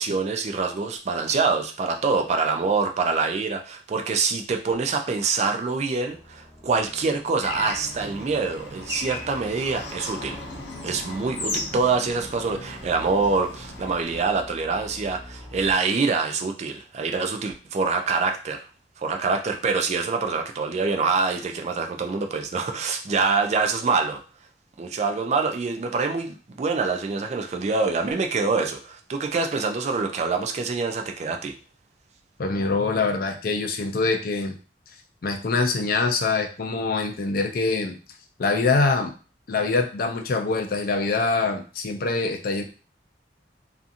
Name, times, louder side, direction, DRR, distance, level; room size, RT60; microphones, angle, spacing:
voice 1, 0.0-10.4 10.8-18.6 19.0-24.2 24.8-31.5, right 4 dB, 40° right, 5 dB, 0.3 m, -25 dB
sound 1, 6.0-15.7, equal, 5° right, 1.2 m, -45 dB
Bird / Traffic noise roadway noise, 7.4-14.2, left 2 dB, 80° left, 0.7 m, -36 dB
voice 2, 32.4-34.5 35.2-38.0 38.4-39.1 39.5-42.6, left 3 dB, 50° left, 5 dB, 0.4 m, -24 dB
2.7 x 2.4 x 2.5 m, 0.35 s
head